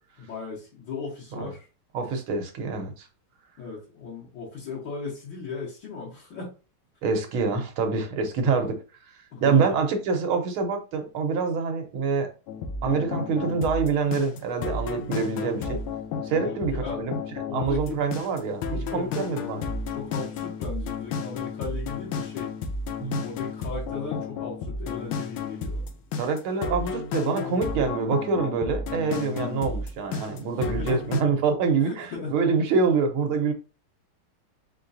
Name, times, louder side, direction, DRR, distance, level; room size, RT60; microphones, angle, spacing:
voice 1, 0.2-1.7 3.6-6.5 9.3-9.8 16.3-17.0 17.4-18.0 18.9-19.0 19.9-22.5 23.2-25.8 29.3-29.6 30.6-31.0 31.8-32.4, left 5 dB, 65° left, 1.9 m, -37 dB
voice 2, 1.9-3.1 7.0-8.8 9.4-12.3 12.8-15.8 16.2-17.2 17.5-19.7 23.0-23.2 26.1-33.5, right 5 dB, 75° right, 1.7 m, -26 dB
sound 1, 12.5-31.2, left 4 dB, 80° left, 1.5 m, -32 dB
4.4 x 3.7 x 2.6 m
omnidirectional pair, 2.3 m